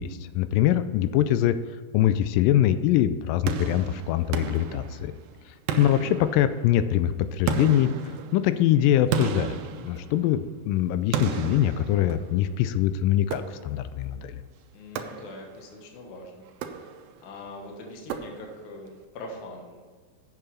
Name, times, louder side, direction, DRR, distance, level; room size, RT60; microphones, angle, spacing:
voice 1, 0.0-1.6 1.9-5.1 5.8-7.9 8.3-14.4, left 12 dB, 85° left, 12 dB, 2.2 m, -23 dB
sound 1, 3.5-5.3 5.7-6.8 7.5-10.5 11.1-12.5 13.3-13.9 15.0-15.7 16.5-17.3 18.1-18.8, right 7 dB, 90° right, 2.5 m, -33 dB
voice 2, 5.7-6.1 14.7-16.5 16.7-16.9 17.2-19.8, left 2 dB, 65° left, 1 dB, 2.7 m, -42 dB
8.5 x 6.7 x 5.7 m, 1.5 s
omnidirectional pair, 3.9 m